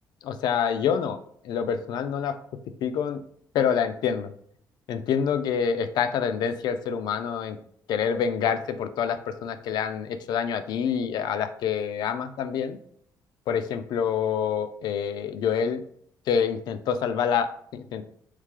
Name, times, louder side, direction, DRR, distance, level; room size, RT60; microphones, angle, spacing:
voice 1, 0.2-2.4 2.8-3.2 3.5-4.3 4.9-7.6 7.9-12.8 13.5-15.8 16.3-18.0, left 7 dB, 70° left, 10 dB, 0.4 m, -27 dB
3.2 x 3.2 x 3.6 m, 0.65 s
cardioid pair, 150°, 7 cm